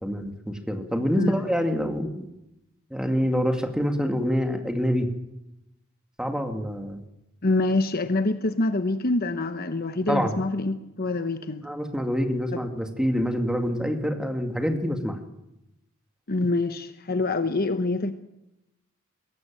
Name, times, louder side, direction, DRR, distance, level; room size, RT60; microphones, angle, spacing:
voice 1, 0.0-2.3 2.9-5.1 6.2-7.0 10.1-10.3 11.6-15.2, equal, 5° right, 4 dB, 2.3 m, -26 dB
voice 2, 7.4-11.6 12.5-12.6 16.3-18.1, left 2 dB, 45° left, 9 dB, 1.0 m, -25 dB
21.5 x 17.5 x 7.6 m, 0.89 s
head